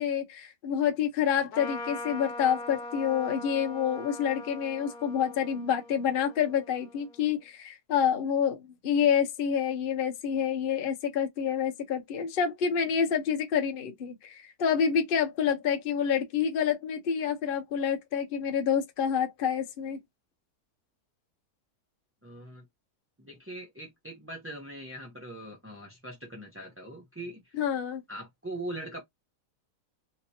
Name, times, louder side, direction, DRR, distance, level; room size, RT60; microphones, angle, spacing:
voice 1, 0.0-20.0 27.5-28.0, left 8 dB, 50° left, 0.7 m, -28 dB
Trumpet, 1.5-7.3, left 2 dB, 75° left, 1.2 m, -41 dB
voice 2, 22.2-22.6 23.2-27.6 28.1-29.0, right 1 dB, 15° right, 0.5 m, -41 dB
3.4 x 2.9 x 2.8 m
omnidirectional pair, 1.7 m